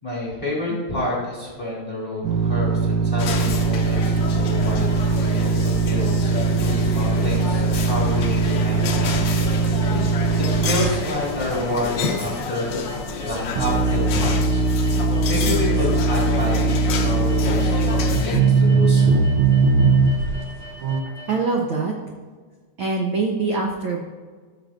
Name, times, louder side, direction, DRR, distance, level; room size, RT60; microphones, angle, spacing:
voice 1, 0.0-9.1 10.5-12.8 13.2-14.6 15.3-19.3, left 2 dB, 20° left, -6 dB, 2.7 m, -29 dB
sound 1, 2.2-11.2 11.9-12.0 12.3-12.4 13.6-20.4 20.8-21.0, right 4 dB, 90° right, 1.2 m, -20 dB
sound 2, 3.2-18.4, left 4 dB, 85° left, 1.0 m, -29 dB
sound 3, 3.4-21.3, left 1 dB, 30° right, 2.5 m, -42 dB
voice 2, 21.3-21.9 22.8-24.0, right 4 dB, 65° right, 1 dB, 1.3 m, -24 dB
14.5 x 7.1 x 2.5 m, 1.5 s
omnidirectional pair, 3.3 m